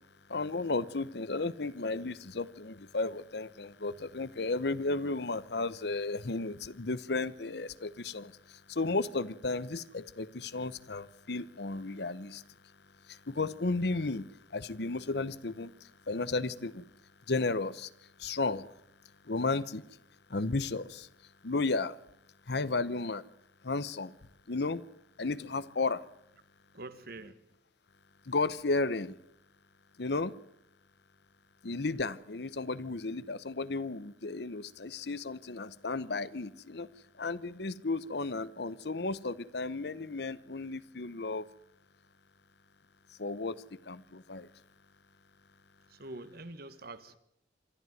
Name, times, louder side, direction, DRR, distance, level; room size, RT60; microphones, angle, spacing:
voice 1, 0.3-12.4 13.1-16.9 17.3-17.9 18.2-18.7 19.2-19.8 20.3-21.1 21.4-22.0 22.5-23.2 23.6-24.1 24.5-24.8 25.2-26.0 28.3-29.2 30.0-30.3 31.6-36.9 37.2-41.5 43.2-43.6 43.8-44.5, left 3 dB, 60° left, 0.9 m, -34 dB
voice 2, 26.7-27.4 45.9-47.2, right 2 dB, 55° right, 1.5 m, -45 dB
26.0 x 12.5 x 9.3 m
head